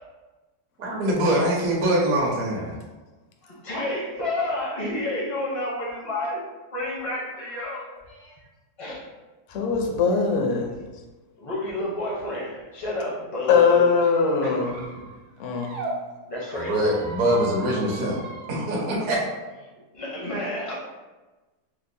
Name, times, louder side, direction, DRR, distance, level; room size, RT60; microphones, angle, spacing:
voice 1, 0.8-2.7 16.6-18.2 18.5-19.2, right 1 dB, 65° right, -5 dB, 1.2 m, -23 dB
voice 2, 3.4-6.4 6.7-8.4 8.8-9.0 11.4-13.9 14.4-14.6 16.3-16.9 19.9-20.7, left 1 dB, 40° left, -4 dB, 0.5 m, -30 dB
voice 3, 9.5-10.7 13.5-14.8 15.4-15.8, left 5 dB, 65° left, 1 dB, 0.8 m, -21 dB
Squeak, 13.9-15.9 16.5-18.6, right 2 dB, 85° right, 1.2 m, -39 dB
5.4 x 2.0 x 2.6 m, 1.2 s
omnidirectional pair, 1.7 m